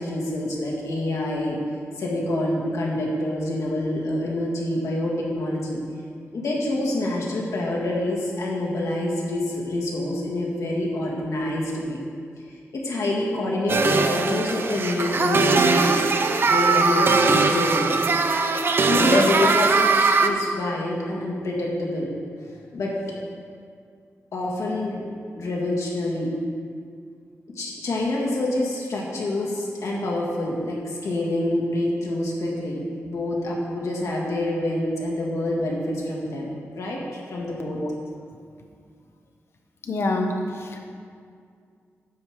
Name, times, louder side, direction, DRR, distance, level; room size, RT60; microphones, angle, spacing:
voice 1, 0.0-1.6 2.0-5.8 6.3-12.0 12.7-16.0 16.4-18.0 18.9-22.1 22.7-22.9 24.3-25.0 25.3-26.3 27.5-37.8, left 1 dB, 85° left, -3 dB, 1.9 m, -27 dB
sound 1, 13.7-20.3, right 4 dB, 50° right, 0.5 m, -20 dB
voice 2, 39.9-40.8, left 2 dB, 55° left, 3 dB, 1.0 m, -24 dB
9.5 x 4.9 x 7.2 m, 2.2 s
wide cardioid pair, 150°, 5 cm